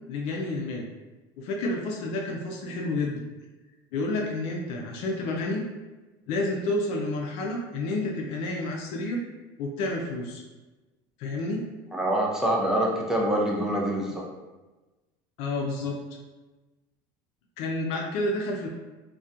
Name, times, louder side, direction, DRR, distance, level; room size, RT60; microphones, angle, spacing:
voice 1, 0.1-0.9 1.4-3.2 3.9-5.6 6.3-9.2 9.6-10.4 11.2-11.6 15.4-16.0 17.6-18.7, left 2 dB, 70° left, 0 dB, 0.4 m, -30 dB
voice 2, 11.9-14.2, right 1 dB, 5° right, -3 dB, 0.5 m, -25 dB
2.3 x 2.1 x 2.7 m, 1.2 s
supercardioid pair, 120°, 11 cm